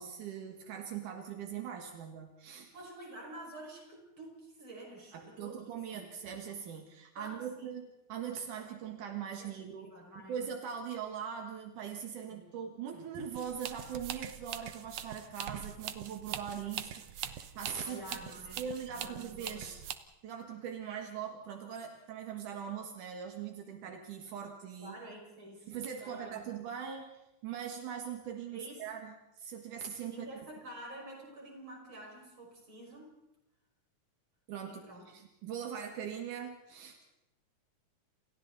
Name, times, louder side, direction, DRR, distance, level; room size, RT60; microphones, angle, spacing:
voice 1, 0.0-2.7 5.1-9.9 10.3-18.0 18.6-19.8 20.2-25.0 25.7-30.3 34.5-37.1, right 8 dB, 80° right, 3 dB, 3.1 m, -41 dB
voice 2, 2.7-5.6 5.9-6.1 7.2-7.7 9.4-10.4 12.3-12.6 17.8-18.6 18.9-19.7 24.8-25.7 26.0-26.4 28.5-28.9 30.0-33.1 34.6-35.0, right 1 dB, 40° right, 0 dB, 6.3 m, -48 dB
sound 1, 13.3-20.0, right 10 dB, 65° right, 2.0 m, -43 dB
29.5 x 28.5 x 4.1 m, 0.91 s
omnidirectional pair, 3.5 m